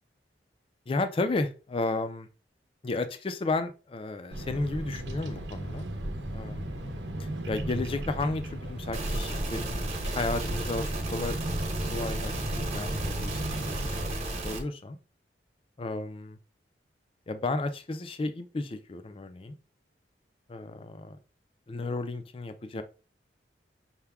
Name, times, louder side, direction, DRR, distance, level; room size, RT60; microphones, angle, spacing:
voice 1, 0.9-2.3 2.8-5.9 6.3-6.9 7.5-11.4 11.9-15.0 15.8-16.4 17.3-19.6 20.5-21.2 21.7-22.8, left 2 dB, 30° left, 9 dB, 0.4 m, -33 dB
Bird vocalization bird call bird song, 4.3-14.1, right 1 dB, 90° right, 0.8 m, -36 dB
sound 1, 8.9-14.6, right 2 dB, 35° right, 1.0 m, -34 dB
5.7 x 2.2 x 3.5 m, 0.34 s
head